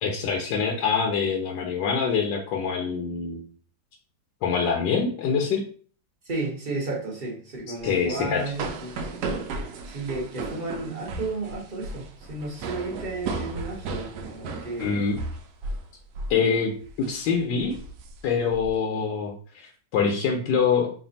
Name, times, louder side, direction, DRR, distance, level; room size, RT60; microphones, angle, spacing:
voice 1, 0.0-3.4 4.4-5.6 7.8-8.4 14.8-15.2 16.3-17.8 18.2-20.9, left 6 dB, 75° left, 1 dB, 1.2 m, -25 dB
voice 2, 6.2-9.2 9.8-14.9, right 2 dB, 35° right, -3 dB, 0.8 m, -33 dB
sound 1, 7.8-15.9 16.1-16.4 16.8-17.1 17.6-18.7, right 3 dB, 70° right, 1.0 m, -35 dB
3.3 x 2.4 x 3.9 m, 0.42 s
omnidirectional pair, 2.1 m